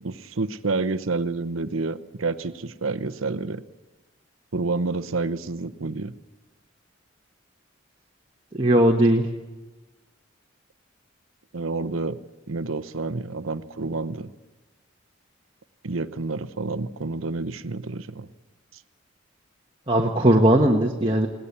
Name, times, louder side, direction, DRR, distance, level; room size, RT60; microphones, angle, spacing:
voice 1, 0.0-3.6 4.5-6.1 11.5-12.2 12.5-14.3 15.8-18.3, right 3 dB, 85° right, 11 dB, 0.9 m, -29 dB
voice 2, 8.5-9.3 19.9-21.3, right 1 dB, 25° right, 1 dB, 1.3 m, -18 dB
22.0 x 18.0 x 8.5 m, 1.1 s
head